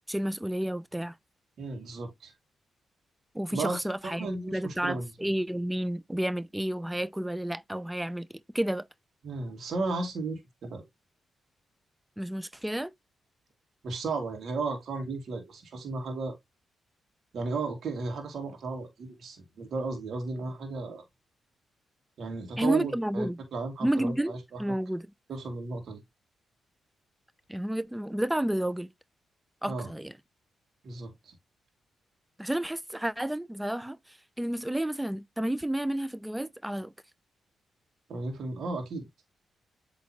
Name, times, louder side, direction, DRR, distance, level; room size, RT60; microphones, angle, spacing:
voice 1, 0.1-1.2 3.3-8.3 8.5-8.9 12.2-12.9 22.6-23.4 23.8-25.1 27.5-28.9 29.6-30.1 32.4-36.9, right 1 dB, 10° right, 0.5 m, -31 dB
voice 2, 1.6-2.3 3.5-5.0 9.2-10.8 13.8-16.4 17.3-21.0 22.2-24.6 25.3-26.0 29.7-29.9 30.8-31.3 38.1-39.1, right 3 dB, 65° right, 2.5 m, -34 dB
8.2 x 3.9 x 3.0 m
hypercardioid pair, 45°, 0 cm